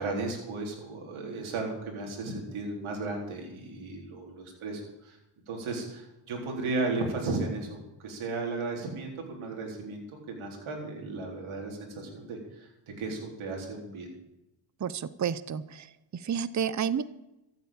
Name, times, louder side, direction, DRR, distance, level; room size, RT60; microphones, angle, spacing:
voice 1, 0.0-5.2 5.5-7.8 8.0-12.7 13.0-14.1, right 3 dB, 80° right, 0 dB, 4.0 m, -35 dB
voice 2, 14.8-17.0, right 8 dB, 35° right, 16 dB, 0.8 m, -31 dB
14.0 x 8.2 x 8.7 m, 0.91 s
cardioid pair, 75°, 48 cm